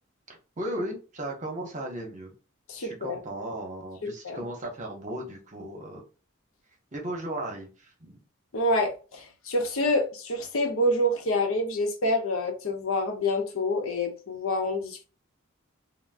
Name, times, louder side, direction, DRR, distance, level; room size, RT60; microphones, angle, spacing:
voice 1, 0.3-2.3 2.8-6.0 6.9-8.2, right 1 dB, 35° right, 0.8 m, -36 dB
voice 2, 2.7-3.2 4.0-4.4 8.5-15.0, left 1 dB, 70° left, 0.7 m, -27 dB
3.5 x 2.0 x 2.5 m
head